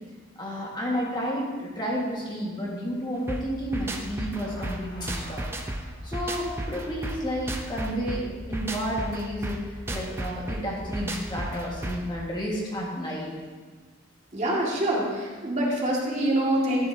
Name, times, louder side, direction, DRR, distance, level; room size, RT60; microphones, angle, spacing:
voice 1, 0.4-5.4 6.0-13.3, equal, 20° left, -3 dB, 1.7 m, -31 dB
sound 1, 3.3-12.2, right 1 dB, 10° right, 0.7 m, -34 dB
Thunder, 4.2-8.1, left 1 dB, 75° left, 3.1 m, -49 dB
voice 2, 14.3-16.9, right 1 dB, 35° right, -4 dB, 2.1 m, -25 dB
12.5 x 11.0 x 2.8 m, 1.4 s
head